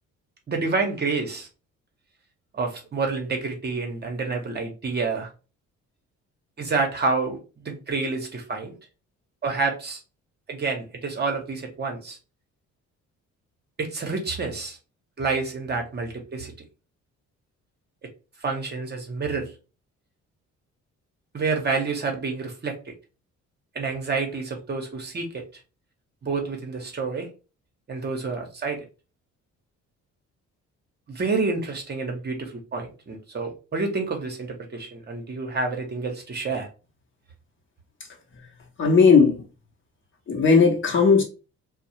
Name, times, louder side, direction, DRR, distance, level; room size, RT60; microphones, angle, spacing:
voice 1, 0.5-1.5 2.5-5.3 6.6-8.8 9.4-10.0 10.5-12.2 13.8-14.8 15.2-16.5 18.4-19.5 21.3-22.9 23.7-25.4 26.2-27.3 27.9-28.8 31.1-36.7, right 4 dB, 35° right, 0.7 m, -28 dB
voice 2, 38.8-39.4 40.3-41.2, left 5 dB, 40° left, 0.7 m, -17 dB
2.3 x 2.0 x 2.8 m
cardioid pair, 90°, 30 cm